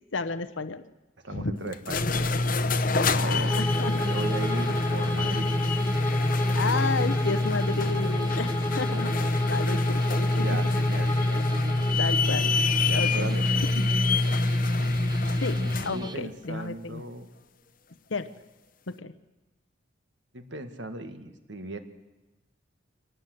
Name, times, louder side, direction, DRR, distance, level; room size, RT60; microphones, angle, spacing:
voice 1, 0.1-0.8 1.3-1.6 2.9-4.0 6.5-9.1 9.4-10.6 12.0-12.5 12.9-13.3 13.7-14.0 15.4-17.0 18.1-18.3 18.9-19.1, left 4 dB, 70° left, 11 dB, 0.9 m, -32 dB
voice 2, 1.2-2.4 2.7-2.9 3.2-3.5 4.0-5.5 9.7-9.9 10.4-11.4 12.9-13.5 15.9-17.4 20.3-21.8, right 2 dB, 60° right, 8 dB, 1.9 m, -37 dB
sound 1, 1.7-16.0, left 2 dB, 45° left, 1.0 m, -25 dB
sound 2, 3.4-16.2, right 1 dB, 20° right, 0.9 m, -36 dB
Bowed string instrument, 3.5-12.0, left 2 dB, 15° left, 1.6 m, -35 dB
24.5 x 18.5 x 7.9 m, 1.1 s
head